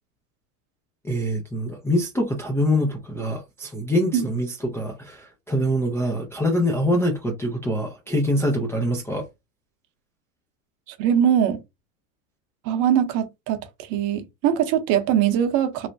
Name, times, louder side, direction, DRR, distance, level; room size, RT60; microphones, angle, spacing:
voice 1, 1.0-9.3, equal, 5° left, 0.4 m, -24 dB
voice 2, 10.9-11.6 12.6-13.6 13.9-15.9, right 9 dB, 45° right, 0.8 m, -21 dB
3.1 x 2.1 x 2.6 m
supercardioid pair, 115°, 42 cm